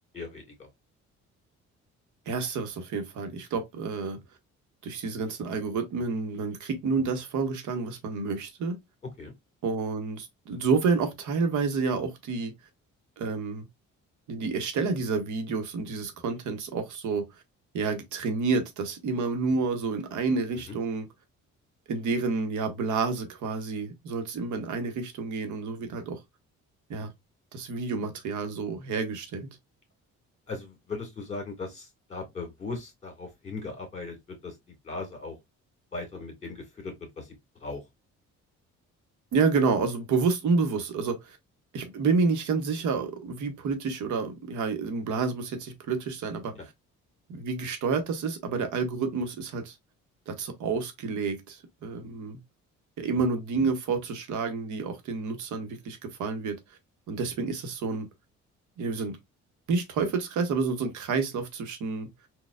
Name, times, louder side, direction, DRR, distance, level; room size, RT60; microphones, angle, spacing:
voice 1, 0.1-0.7 9.2-9.3 20.7-20.8 30.5-34.6 34.8-35.4 35.9-37.3 37.6-37.8 46.6-46.7, left 3 dB, 20° left, 1.9 m, -38 dB
voice 2, 2.3-4.2 4.8-8.8 9.6-12.5 13.2-13.6 14.3-17.2 17.7-21.1 21.9-26.2 26.9-27.1 27.5-29.5 39.3-41.4 41.7-46.5 47.3-49.7 50.3-52.4 53.0-56.6 57.1-58.1 58.8-59.2 59.7-62.1, right 4 dB, 75° right, 0.9 m, -29 dB
4.1 x 2.3 x 2.4 m
cardioid pair, 90°, 30 cm